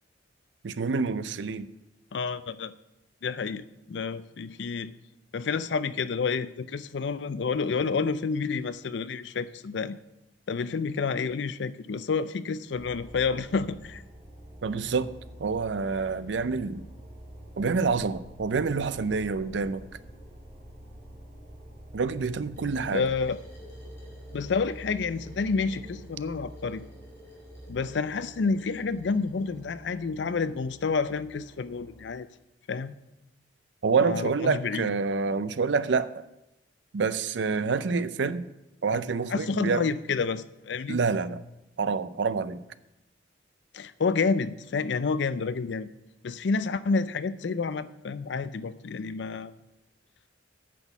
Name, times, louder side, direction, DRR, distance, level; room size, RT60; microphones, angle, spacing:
voice 1, 0.6-1.7 14.6-15.1 15.4-16.9 17.6-19.8 21.9-23.0 33.8-36.2 36.9-38.5 38.8-39.9 40.9-41.4 41.8-42.6, right 4 dB, 70° right, 0.5 m, -27 dB
voice 2, 2.1-2.7 3.2-4.9 5.3-10.0 10.5-14.0 22.9-23.4 24.3-26.8 27.7-32.3 32.7-33.0 34.0-34.9 38.9-39.0 39.3-41.0 43.7-45.9 46.2-49.5, left 4 dB, 65° left, 0.5 m, -29 dB
sound 1, 12.7-32.1, equal, 35° right, 2.5 m, -47 dB
sound 2, 22.5-29.7, left 1 dB, 15° left, 2.9 m, -53 dB
9.2 x 6.2 x 7.0 m
head